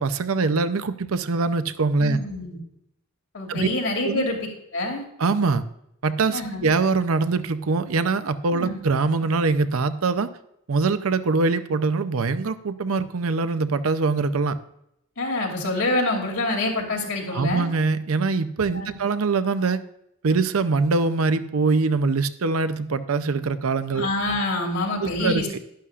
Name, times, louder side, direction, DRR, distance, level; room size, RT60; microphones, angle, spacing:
voice 1, 0.0-2.2 3.5-3.7 4.0-4.3 5.2-5.6 6.0-10.3 10.7-14.6 17.3-19.8 20.2-24.1 25.0-25.4, right 4 dB, 75° right, 12 dB, 0.6 m, -23 dB
voice 2, 2.0-2.6 3.3-4.4 4.7-5.0 6.3-6.6 8.5-8.8 15.2-17.7 18.7-19.0 23.9-25.5, left 2 dB, 75° left, 0 dB, 2.9 m, -26 dB
11.5 x 11.0 x 2.5 m, 0.78 s
head